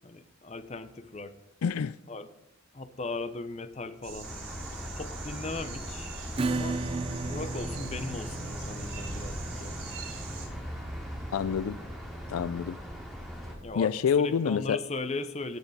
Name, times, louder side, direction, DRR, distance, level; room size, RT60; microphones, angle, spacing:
voice 1, 0.0-1.3 2.1-2.3 2.7-4.4 4.9-6.1 6.5-6.8 7.3-9.8 13.6-15.6, left 3 dB, 30° left, 0.7 m, -38 dB
voice 2, 1.6-1.9 11.3-11.8 12.3-12.8 13.8-14.8, left 7 dB, 85° left, 0.4 m, -27 dB
sound 1, 4.0-10.5, right 3 dB, 80° right, 5.2 m, -43 dB
sound 2, 4.2-13.5, equal, ahead, 2.5 m, -40 dB
Acoustic guitar / Strum, 6.4-13.6, right 3 dB, 25° right, 0.4 m, -36 dB
18.5 x 7.9 x 4.1 m
head